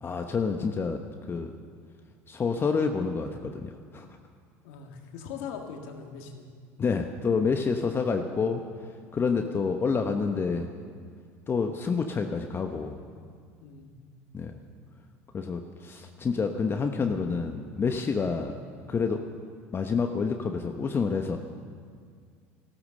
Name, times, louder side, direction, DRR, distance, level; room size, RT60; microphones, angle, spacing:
voice 1, 0.0-1.0 1.3-1.5 2.3-4.1 6.8-8.6 9.1-10.7 11.5-13.0 14.3-14.6 15.3-18.6 18.9-19.2 19.7-21.4, left 5 dB, 30° left, 5 dB, 1.0 m, -28 dB
voice 2, 4.6-6.5 9.2-9.3 13.6-13.9, left 6 dB, 75° left, 3 dB, 1.9 m, -41 dB
15.0 x 13.0 x 6.6 m, 2.1 s
hypercardioid pair, 80°, 7 cm